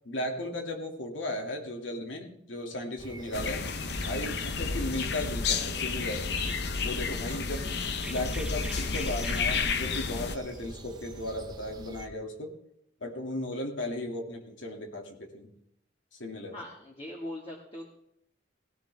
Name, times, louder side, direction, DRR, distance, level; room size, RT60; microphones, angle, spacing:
voice 1, 0.0-3.7 4.0-6.3 6.8-7.7 8.1-12.5 13.0-15.5 16.1-16.5, left 1 dB, 85° left, 2 dB, 2.5 m, -36 dB
sound 1, 3.0-12.1, right 1 dB, 20° right, 1.1 m, -45 dB
sound 2, 3.3-10.4, left 5 dB, 60° left, 0.9 m, -31 dB
Chirp tweet, 6.4-11.5, right 1 dB, 5° right, 0.5 m, -45 dB
voice 2, 16.5-17.9, left 1 dB, 30° left, -2 dB, 2.0 m, -41 dB
18.5 x 16.5 x 3.5 m, 0.75 s
head